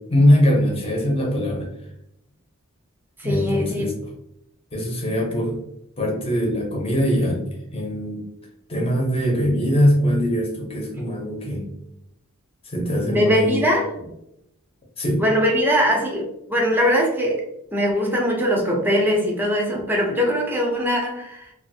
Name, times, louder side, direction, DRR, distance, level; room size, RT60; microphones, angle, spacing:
voice 1, 0.1-1.7 3.2-4.1 4.7-5.6 6.0-7.5 7.7-8.2 8.7-11.7 12.6-13.6 15.0-15.2, equal, 25° left, -1 dB, 0.7 m, -21 dB
voice 2, 3.2-3.9 13.1-13.9 15.2-17.4 17.7-21.5, equal, 10° right, -1 dB, 0.5 m, -21 dB
2.6 x 2.4 x 2.6 m, 0.81 s
head